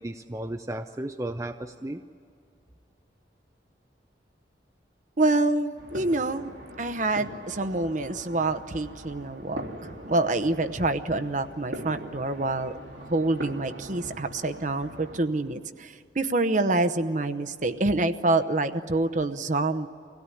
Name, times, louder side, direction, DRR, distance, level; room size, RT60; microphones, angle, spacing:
voice 1, 0.0-2.0, right 1 dB, 15° right, 6 dB, 0.5 m, -34 dB
voice 2, 5.2-12.7 13.1-19.9, right 2 dB, 45° right, 9 dB, 0.9 m, -27 dB
sound 1, 5.8-15.2, right 1 dB, 90° right, 3.1 m, -42 dB
25.0 x 17.0 x 9.9 m, 2.3 s
head